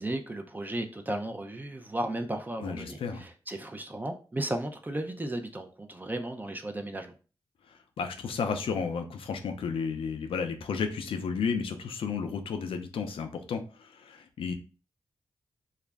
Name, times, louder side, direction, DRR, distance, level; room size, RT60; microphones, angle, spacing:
voice 1, 0.0-7.1, right 1 dB, 20° right, 5 dB, 0.4 m, -35 dB
voice 2, 2.6-3.2 8.0-14.5, left 5 dB, 90° left, 6 dB, 0.4 m, -32 dB
2.4 x 2.0 x 3.3 m, 0.36 s
cardioid pair, 60°, 9 cm